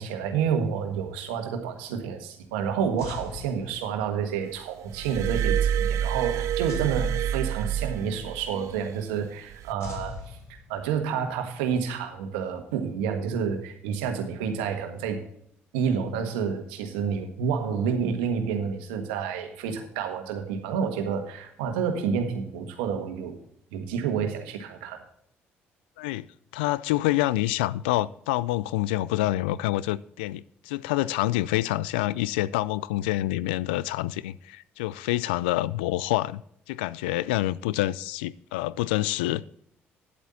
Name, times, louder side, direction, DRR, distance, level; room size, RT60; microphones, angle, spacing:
voice 1, 0.0-15.2 15.7-23.4 23.7-25.0, right 7 dB, 85° right, 1.5 m, -29 dB
sound 1, 3.0-4.3 6.7-7.9 9.8-11.1, left 5 dB, 65° left, 3.1 m, -41 dB
Glass, 4.9-8.5 9.5-9.7, right 10 dB, 70° right, 0.4 m, -27 dB
voice 2, 26.0-26.3 26.5-36.4 36.7-39.5, left 16 dB, 90° left, 0.3 m, -27 dB
10.0 x 8.3 x 4.1 m
hypercardioid pair, 60°, 5 cm